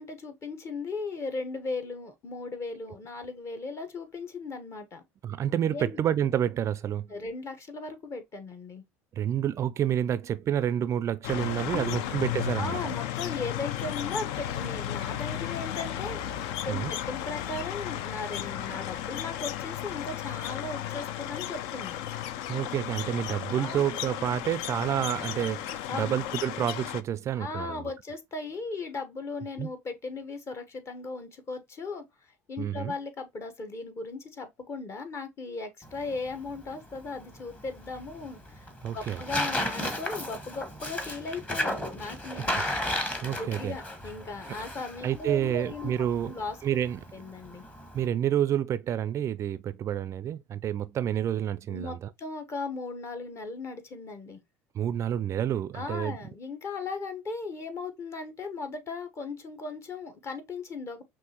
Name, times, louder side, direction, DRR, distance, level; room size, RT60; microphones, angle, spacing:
voice 1, 0.0-5.0 5.7-6.0 7.1-8.8 11.7-12.2 12.5-22.0 23.5-23.8 25.9-26.2 27.4-38.7 38.9-42.6 43.3-45.9 46.2-46.5 47.1-47.6 51.7-54.4 55.7-61.0, left 3 dB, 40° left, 1.1 m, -37 dB
voice 2, 5.2-7.1 9.1-12.8 16.7-16.9 22.5-27.9 29.6-29.7 32.6-32.9 38.8-39.2 43.2-43.8 45.0-46.4 46.6-47.1 47.9-52.1 54.7-56.2, right 10 dB, 40° right, 0.3 m, -29 dB
sound 1, 11.2-27.0, left 11 dB, 70° left, 0.4 m, -34 dB
Tearing, 35.8-48.1, left 1 dB, 20° left, 1.1 m, -35 dB
5.7 x 2.5 x 2.8 m
hypercardioid pair, 75°, 8 cm